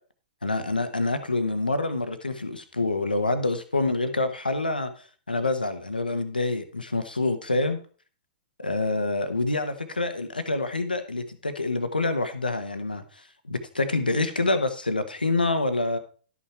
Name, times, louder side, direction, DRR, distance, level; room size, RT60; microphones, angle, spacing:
voice 1, 0.4-7.8 8.6-16.0, left 2 dB, 85° left, 10 dB, 1.3 m, -27 dB
12.5 x 6.1 x 4.5 m, 0.40 s
figure-of-eight pair, 105°, 5 cm